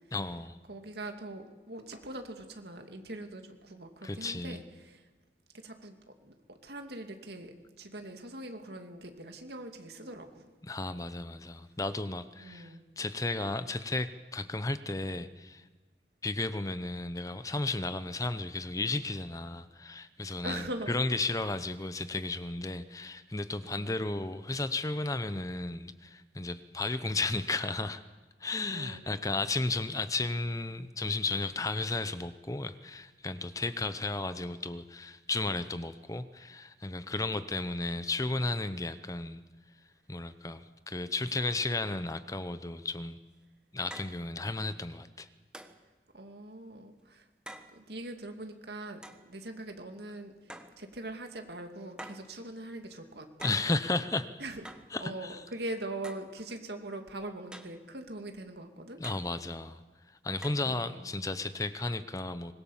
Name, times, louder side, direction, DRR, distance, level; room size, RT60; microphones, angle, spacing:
voice 1, 0.1-0.6 4.0-4.6 10.6-15.6 16.2-28.0 28.4-39.4 40.1-43.2 43.7-45.3 53.4-54.4 54.9-55.4 59.0-59.8 60.2-62.5, left 2 dB, 20° left, 12 dB, 0.7 m, -34 dB
voice 2, 0.7-5.0 5.6-10.5 12.4-12.8 20.4-20.9 23.6-24.2 28.7-29.1 46.1-47.2 47.7-53.3 54.4-54.6 55.0-59.0 60.6-61.1, right 1 dB, 65° right, 5 dB, 2.5 m, -42 dB
sound 1, 43.0-43.1 43.9-44.2 45.5-45.8 47.5-47.7 49.0-49.3 50.5-50.8 52.0-52.3 53.4-53.7 54.6-54.9 56.0-56.3 57.5-57.8 59.0-59.3 60.4-60.7, right 1 dB, 5° right, 1.3 m, -46 dB
25.0 x 21.0 x 7.3 m, 1.3 s
head